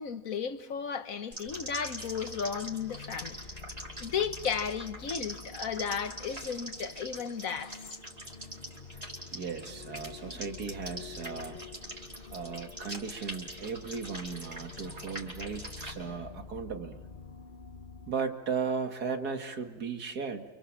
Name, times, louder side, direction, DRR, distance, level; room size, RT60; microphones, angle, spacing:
voice 1, 0.0-3.4 4.0-7.8, left 6 dB, 60° left, 1.5 m, -34 dB
sound 1, 1.3-15.9, right 1 dB, 25° right, 4.8 m, -44 dB
sound 2, 1.4-18.2, left 6 dB, 35° left, 1.0 m, -49 dB
voice 2, 9.3-11.6 12.3-17.0 18.1-20.5, right 5 dB, 75° right, 2.5 m, -36 dB
29.0 x 27.5 x 7.5 m
omnidirectional pair, 1.7 m